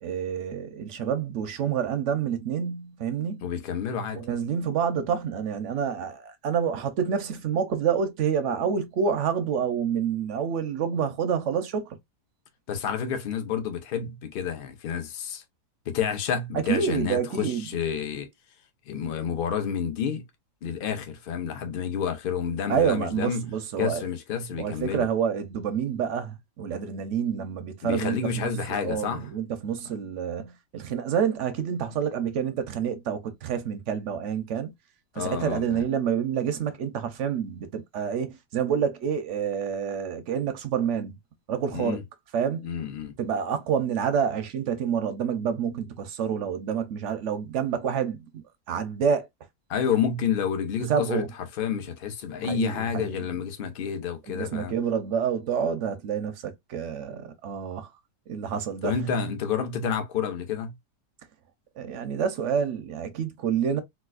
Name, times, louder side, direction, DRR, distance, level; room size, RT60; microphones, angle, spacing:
voice 1, 0.0-3.4 4.1-12.0 16.7-17.6 22.7-24.0 24.6-28.5 28.8-34.7 35.2-41.1 41.5-42.0 42.3-42.7 43.2-48.3 48.7-49.3 50.9-51.3 52.4-53.3 54.3-57.9 58.3-59.0 61.8-63.8, right 7 dB, 65° right, 0.7 m, -28 dB
voice 2, 3.4-4.2 12.7-15.4 15.9-18.3 18.9-20.2 20.6-25.1 27.8-29.3 35.1-35.8 41.7-42.0 42.6-43.1 49.7-51.3 51.6-54.7 58.8-60.7, left 7 dB, 60° left, 0.5 m, -29 dB
4.0 x 2.4 x 2.4 m
omnidirectional pair, 1.8 m